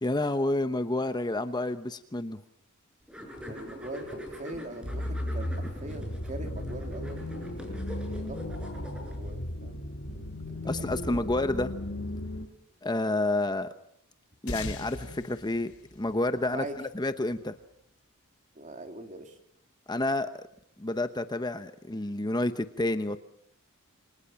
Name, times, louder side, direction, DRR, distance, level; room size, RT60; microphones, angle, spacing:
voice 1, 0.0-2.4 10.7-11.7 12.8-13.7 14.4-17.6 19.9-20.4 20.8-23.2, left 2 dB, 20° left, 10 dB, 0.9 m, -29 dB
sound 1, 3.1-9.3, equal, 5° right, 6.3 m, -44 dB
voice 2, 3.4-8.4 8.8-11.4 16.5-16.8 18.5-19.3, right 1 dB, 35° right, 5 dB, 3.4 m, -43 dB
sound 2, 4.8-12.5, left 1 dB, 55° left, 2.1 m, -35 dB
sound 3, 14.5-17.2, left 2 dB, 70° left, 3.9 m, -41 dB
28.0 x 25.0 x 5.8 m, 0.72 s
head